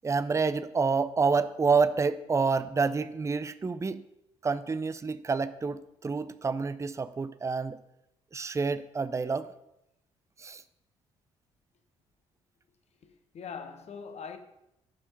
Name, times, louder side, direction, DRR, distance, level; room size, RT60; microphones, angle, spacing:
voice 1, 0.0-4.0 4.4-7.8 8.3-9.5 10.4-10.6, right 4 dB, 20° right, 0.5 m, -28 dB
voice 2, 13.0-14.4, left 6 dB, 45° left, 1.2 m, -42 dB
10.5 x 5.6 x 5.4 m
figure-of-eight pair, 45°, 15 cm